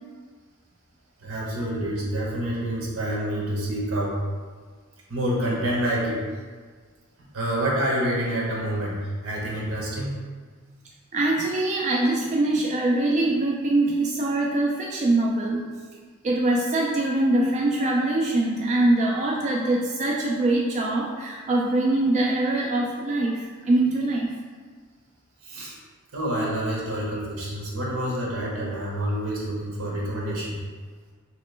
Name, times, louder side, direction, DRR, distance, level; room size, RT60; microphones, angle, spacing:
voice 1, 1.2-4.2 5.1-6.2 7.3-10.2 25.4-25.8 26.1-30.6, right 1 dB, 80° right, -4 dB, 1.0 m, -27 dB
voice 2, 11.1-15.6 16.2-24.3, right 2 dB, 35° right, -2 dB, 0.3 m, -23 dB
3.0 x 2.9 x 3.2 m, 1.5 s
head